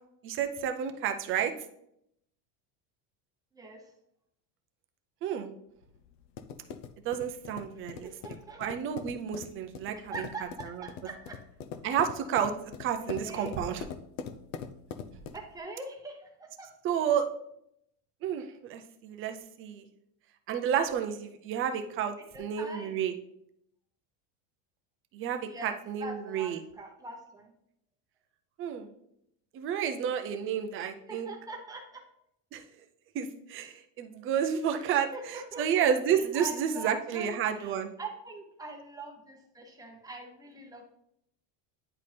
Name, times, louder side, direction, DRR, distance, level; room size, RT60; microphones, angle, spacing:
voice 1, 0.2-1.5 5.2-5.5 7.0-8.1 8.6-10.3 10.6-10.8 11.8-13.8 16.8-17.3 18.2-19.9 20.5-23.1 25.1-26.6 28.6-28.9 29.5-31.3 32.5-32.6 33.1-37.9, right 8 dB, 30° right, 7 dB, 0.4 m, -31 dB
sound 1, 5.8-15.6, left 7 dB, 80° left, 0.8 m, -43 dB
voice 2, 8.0-8.6 9.9-11.4 13.0-13.5 15.3-16.7 22.3-23.0 25.5-27.5 31.1-32.0 34.9-35.9 36.3-40.8, right 2 dB, 5° right, 1 dB, 0.8 m, -43 dB
9.7 x 4.2 x 3.3 m, 0.74 s
cardioid pair, 160°, 49 cm